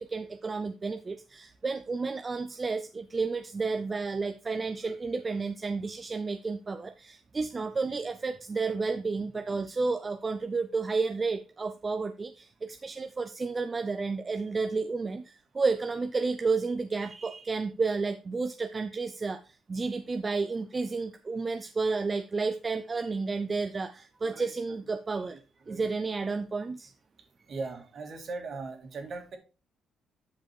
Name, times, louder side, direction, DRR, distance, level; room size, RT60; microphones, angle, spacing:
voice 1, 0.0-25.4 25.7-26.9, right 4 dB, 30° right, 8 dB, 0.6 m, -31 dB
voice 2, 24.2-24.5 25.3-26.0 27.5-29.4, right 3 dB, 55° right, 4 dB, 2.4 m, -39 dB
8.9 x 5.1 x 4.4 m, 0.33 s
cardioid pair, 90°, 0 cm